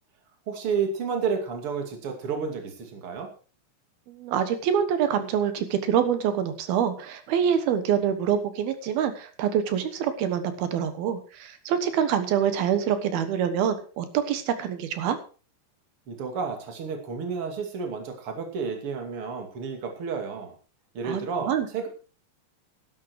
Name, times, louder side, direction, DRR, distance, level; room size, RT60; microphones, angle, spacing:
voice 1, 0.5-3.3 16.1-20.5 20.9-21.9, right 5 dB, 35° right, 4 dB, 2.7 m, -31 dB
voice 2, 4.1-15.2 21.0-21.7, right 8 dB, 65° right, 10 dB, 2.9 m, -26 dB
12.5 x 11.5 x 4.7 m, 0.37 s
omnidirectional pair, 5.1 m